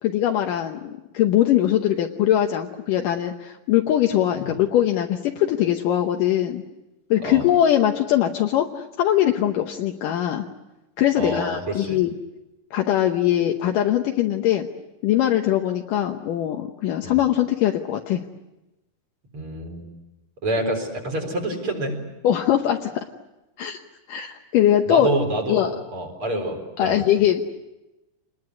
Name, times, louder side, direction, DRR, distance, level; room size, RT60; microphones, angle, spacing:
voice 1, 0.0-6.6 7.1-10.5 11.0-12.1 12.7-14.7 15.0-18.2 22.2-23.1 23.6-23.8 24.1-25.1 25.5-25.7 26.8-27.4, left 11 dB, 75° left, 3 dB, 2.5 m, -21 dB
voice 2, 11.2-12.0 17.0-17.2 19.3-19.9 20.4-22.0 24.9-27.0, right 1 dB, 40° right, 2 dB, 4.8 m, -27 dB
27.5 x 20.5 x 9.6 m, 1.0 s
omnidirectional pair, 4.0 m